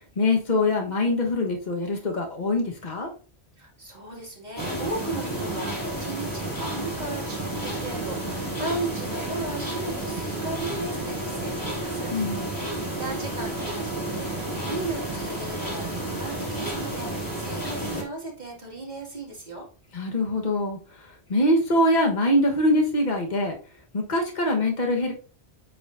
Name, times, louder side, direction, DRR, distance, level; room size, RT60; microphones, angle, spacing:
voice 1, 0.2-3.1 12.1-12.5 19.9-20.8 21.3-23.6 23.9-25.1, left 1 dB, 45° left, 1 dB, 1.5 m, -23 dB
voice 2, 3.6-12.1 12.5-19.7, right 2 dB, 40° right, -3 dB, 2.4 m, -36 dB
sound 1, 4.6-18.0, right 1 dB, 20° left, 2.7 m, -31 dB
8.3 x 5.0 x 2.7 m, 0.37 s
omnidirectional pair, 1.1 m